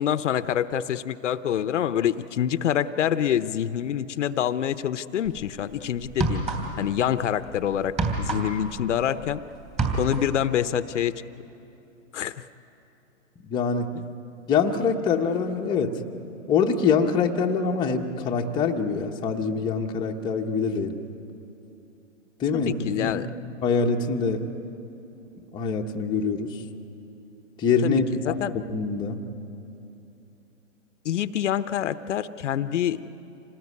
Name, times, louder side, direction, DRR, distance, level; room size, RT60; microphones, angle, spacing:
voice 1, 0.0-6.4 6.8-9.4 9.9-11.2 12.1-12.4 22.5-23.3 27.8-28.5 31.0-33.1, left 10 dB, 65° left, 13 dB, 0.8 m, -26 dB
sound 1, 5.2-5.4 6.0-7.0 7.2-9.4 9.6-10.4, right 3 dB, 15° right, 3.2 m, -27 dB
voice 2, 13.4-13.9 14.5-16.0 16.5-21.0 22.4-23.2 23.6-24.5 25.5-26.6 27.6-28.4 28.7-29.2, left 5 dB, 10° left, 1 dB, 1.0 m, -24 dB
26.5 x 18.5 x 9.6 m, 2.9 s
hypercardioid pair, 150°, 38 cm